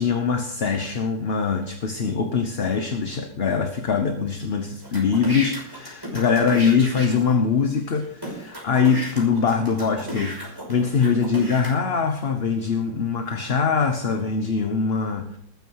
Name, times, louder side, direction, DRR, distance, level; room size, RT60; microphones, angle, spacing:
voice 1, 0.0-15.4, left 5 dB, 40° left, 7 dB, 1.1 m, -23 dB
sound 1, 4.8-7.4 7.9-8.0 8.2-11.7, right 1 dB, 10° right, 5.8 m, -33 dB
19.5 x 9.4 x 4.7 m, 0.71 s
omnidirectional pair, 2.0 m